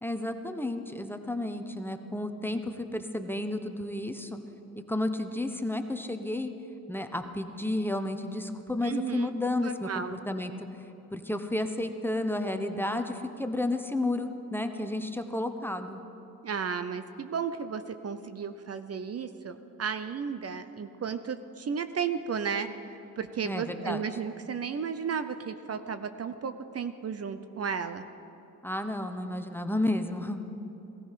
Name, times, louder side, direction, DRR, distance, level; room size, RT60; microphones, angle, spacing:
voice 1, 0.0-4.4 4.9-6.5 6.9-10.7 11.1-16.0 23.4-24.0 28.6-30.4, left 1 dB, 5° left, 7 dB, 0.9 m, -32 dB
voice 2, 8.8-9.3 9.6-10.2 16.4-28.0, right 6 dB, 45° right, 10 dB, 0.7 m, -34 dB
17.0 x 13.5 x 5.8 m, 2.9 s
cardioid pair, 95°, 36 cm